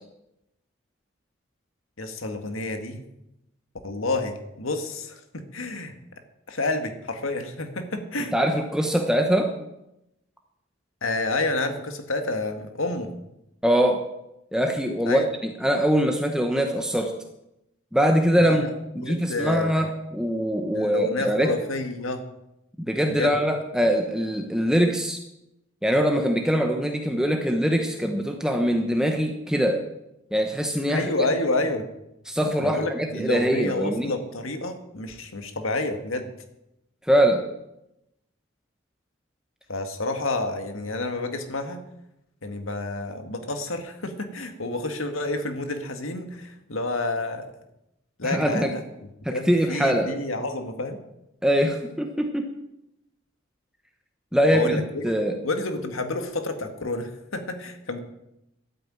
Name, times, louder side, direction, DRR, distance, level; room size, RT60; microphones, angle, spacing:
voice 1, 2.0-3.0 3.8-5.9 6.5-8.3 11.0-13.1 15.1-15.3 18.4-19.8 20.7-22.2 23.1-23.4 30.9-31.9 32.6-36.3 39.7-41.8 42.4-47.5 48.2-48.8 49.3-51.0 54.5-55.0 55.4-58.0, left 2 dB, 85° left, 7 dB, 1.9 m, -29 dB
voice 2, 8.3-9.5 13.6-14.0 14.5-17.1 17.9-18.6 19.0-21.5 22.8-25.2 25.8-29.8 30.3-31.0 32.3-34.1 37.1-37.4 48.2-48.7 49.3-50.1 51.4-52.5 54.3-55.4, equal, 5° right, 3 dB, 1.0 m, -23 dB
12.5 x 8.9 x 8.9 m, 0.87 s
head